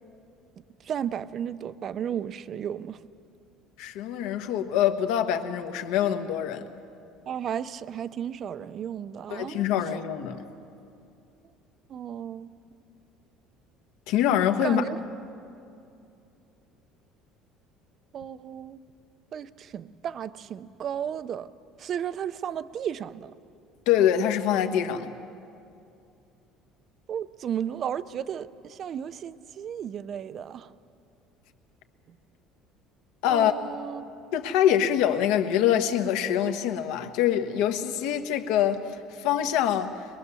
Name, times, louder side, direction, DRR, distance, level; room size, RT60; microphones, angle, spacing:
voice 1, 0.8-3.0 7.3-9.7 11.9-12.6 14.6-15.0 18.1-18.8 19.3-21.5 21.8-23.3 27.1-30.7 33.3-34.1, right 9 dB, 30° right, 0.5 m, -34 dB
voice 2, 3.8-6.7 9.3-10.4 14.1-14.8 23.9-25.1 33.2-33.5 34.3-40.1, left 10 dB, 75° left, 1.3 m, -24 dB
22.5 x 22.5 x 7.0 m
cardioid pair, 175°, 0 cm